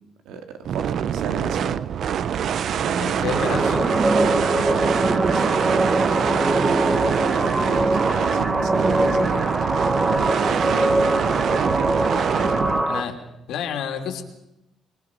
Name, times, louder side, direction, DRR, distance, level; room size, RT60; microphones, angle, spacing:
voice 1, 0.2-1.8 2.8-3.4 4.1-9.8 10.0-11.9 12.3-12.8, right 5 dB, 85° right, 7 dB, 2.3 m, -33 dB
sound 1, 0.6-12.8, right 8 dB, 55° right, 0.7 m, -25 dB
voice 2, 3.0-3.9 12.8-13.2 13.5-14.2, left 8 dB, 80° left, 5 dB, 3.1 m, -29 dB
sound 2, 3.3-13.0, right 2 dB, 20° right, 1.3 m, -22 dB
25.0 x 23.0 x 5.5 m, 0.86 s
cardioid pair, 135°, 0 cm